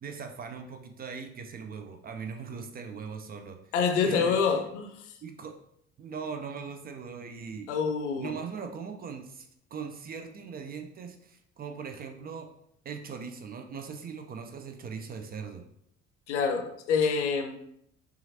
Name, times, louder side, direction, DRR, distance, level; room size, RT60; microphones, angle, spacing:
voice 1, 0.0-3.7 4.0-4.4 5.2-5.5 6.0-7.7 8.2-12.5 12.8-15.6, right 6 dB, 25° right, 5 dB, 0.5 m, -40 dB
voice 2, 3.7-4.9 7.7-8.3 16.3-17.6, left 5 dB, 70° left, 6 dB, 0.6 m, -26 dB
5.6 x 2.5 x 2.8 m, 0.73 s
figure-of-eight pair, 55°, 37 cm